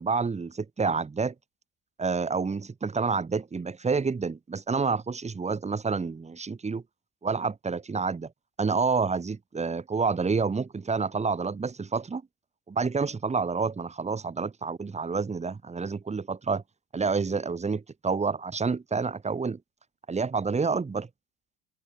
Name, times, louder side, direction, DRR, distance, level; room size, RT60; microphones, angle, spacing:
voice 1, 0.0-1.3 2.0-6.8 7.2-8.3 8.6-12.2 12.7-16.6 16.9-19.6 20.1-21.1, right 4 dB, 20° right, 1.2 m, -28 dB
supercardioid pair, 80°, 37 cm